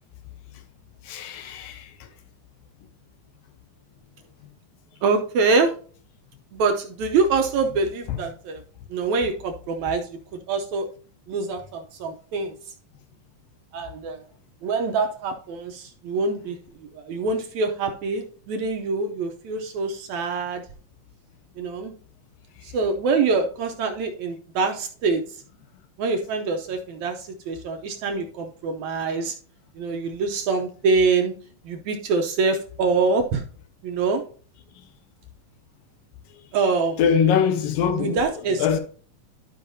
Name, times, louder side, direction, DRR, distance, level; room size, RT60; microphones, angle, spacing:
voice 1, 1.1-1.9 37.0-38.2 38.6-38.8, left 7 dB, 90° left, 2.7 m, -22 dB
voice 2, 5.0-5.7 6.5-8.6 8.9-10.2 10.5-10.9 11.3-12.5 13.7-14.2 14.6-16.6 16.9-20.6 21.6-21.9 22.6-25.2 26.0-29.4 29.8-31.3 31.6-33.4 33.8-34.2 36.5-37.0 37.9-38.8, right 4 dB, 70° right, 1.9 m, -25 dB
12.5 x 5.5 x 2.7 m
omnidirectional pair, 3.9 m